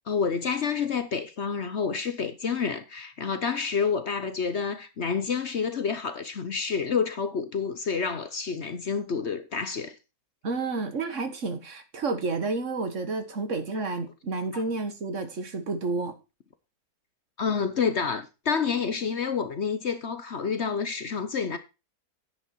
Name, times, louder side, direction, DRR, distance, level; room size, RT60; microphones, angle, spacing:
voice 1, 0.1-9.9 14.5-14.6 17.4-21.6, left 6 dB, 50° left, 1.1 m, -28 dB
voice 2, 10.4-16.1, right 3 dB, 50° right, 1.7 m, -30 dB
10.0 x 8.4 x 4.4 m
omnidirectional pair, 1.7 m